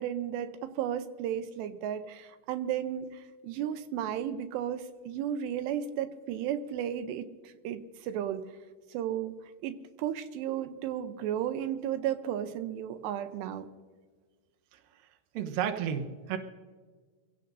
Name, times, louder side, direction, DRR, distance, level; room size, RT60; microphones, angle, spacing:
voice 1, 0.0-8.4 8.9-9.3 9.6-13.7, right 10 dB, 85° right, 10 dB, 3.0 m, -34 dB
voice 2, 15.3-16.4, right 8 dB, 70° right, 5 dB, 2.4 m, -32 dB
26.5 x 16.5 x 2.6 m, 1.5 s
omnidirectional pair, 4.8 m